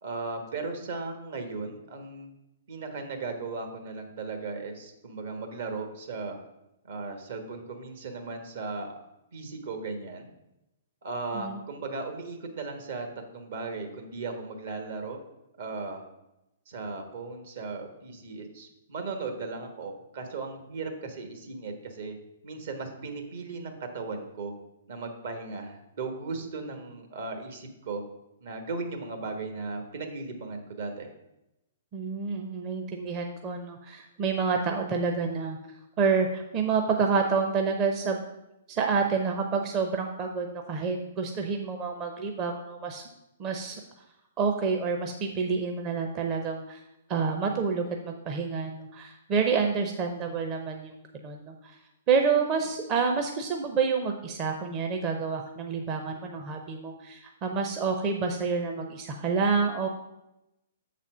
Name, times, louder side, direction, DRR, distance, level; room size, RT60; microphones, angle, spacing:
voice 1, 0.0-2.3 2.7-6.4 6.9-8.9 9.3-10.3 11.0-13.1 13.3-15.2 15.6-16.1 16.7-22.2 22.4-24.5 24.9-28.0 28.4-31.1, right 3 dB, 65° right, 5 dB, 1.3 m, -36 dB
voice 2, 31.9-35.6 36.0-38.2 38.7-43.0 43.4-43.8 44.4-46.8 47.1-50.9 51.2-51.8 52.1-59.9, right 5 dB, 35° right, 3 dB, 0.7 m, -28 dB
7.0 x 4.2 x 6.1 m, 0.91 s
hypercardioid pair, 125°, 0 cm